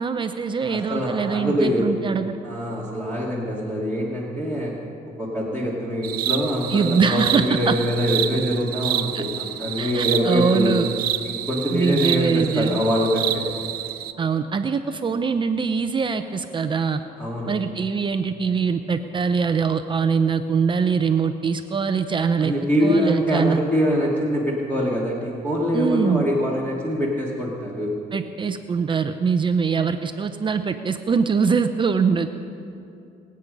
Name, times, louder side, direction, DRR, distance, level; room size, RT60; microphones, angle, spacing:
voice 1, 0.0-2.4 6.7-7.7 9.1-9.2 9.8-10.9 11.7-12.8 14.2-17.0 17.5-22.5 22.8-23.6 25.7-26.2 28.1-32.5, right 5 dB, 30° right, 9 dB, 0.6 m, -23 dB
voice 2, 0.6-1.9 2.4-4.7 5.2-10.8 11.2-13.5 17.2-17.5 22.4-27.9, equal, 10° left, -5 dB, 2.4 m, -24 dB
sound 1, 6.0-14.1, right 12 dB, 65° right, 0.7 m, -28 dB
24.5 x 8.6 x 5.3 m, 2.6 s
cardioid pair, 110°, 17 cm